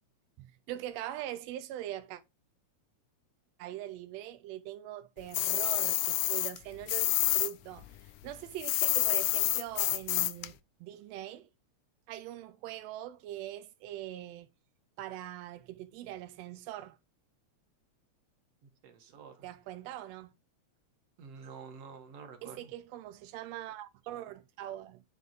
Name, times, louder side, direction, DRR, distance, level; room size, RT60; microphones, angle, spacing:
voice 1, 0.4-2.2 3.6-11.5 12.1-14.5 15.0-17.0 19.4-20.3 22.4-25.0, right 13 dB, 85° right, 1.5 m, -42 dB
sound 1, 5.3-7.5 7.8-10.5, left 16 dB, 80° left, 1.5 m, -28 dB
voice 2, 18.6-19.5 21.2-22.7, right 5 dB, 60° right, 2.2 m, -49 dB
9.2 x 3.6 x 3.9 m
omnidirectional pair, 3.5 m